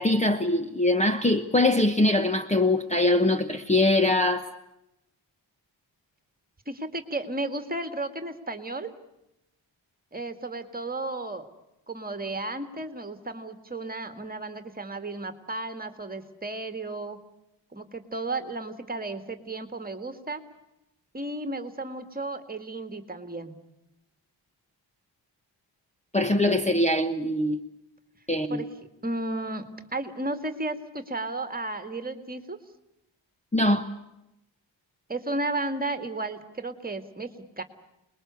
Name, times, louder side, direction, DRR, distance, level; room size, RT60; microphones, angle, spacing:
voice 1, 0.0-4.5 26.1-27.6 28.3-28.6 33.5-33.8, left 1 dB, 15° left, 1.0 m, -22 dB
voice 2, 6.7-8.9 10.1-11.5 11.9-17.2 17.7-20.4 21.1-23.5 28.5-28.7 29.0-29.7 29.9-32.6 35.1-37.3 37.6-37.7, right 2 dB, 20° right, 2.0 m, -33 dB
28.0 x 21.0 x 8.2 m
wide cardioid pair, 160°, 46 cm